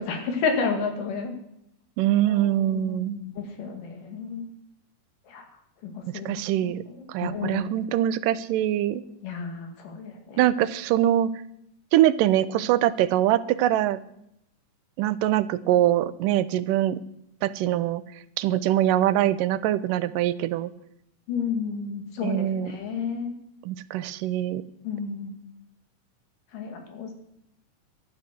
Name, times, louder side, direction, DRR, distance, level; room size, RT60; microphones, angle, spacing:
voice 1, 0.0-1.3 2.2-4.5 5.3-5.5 5.8-7.7 9.2-10.5 21.3-23.3 24.8-25.4 26.5-27.1, left 5 dB, 80° left, 5 dB, 3.9 m, -31 dB
voice 2, 2.0-3.2 6.3-6.8 7.1-9.0 10.4-11.3 11.9-14.0 15.0-17.0 17.4-18.0 18.4-20.7 22.2-22.7 23.7-24.6, right 12 dB, 90° right, 15 dB, 2.4 m, -23 dB
13.0 x 11.0 x 7.6 m, 0.78 s
omnidirectional pair, 3.7 m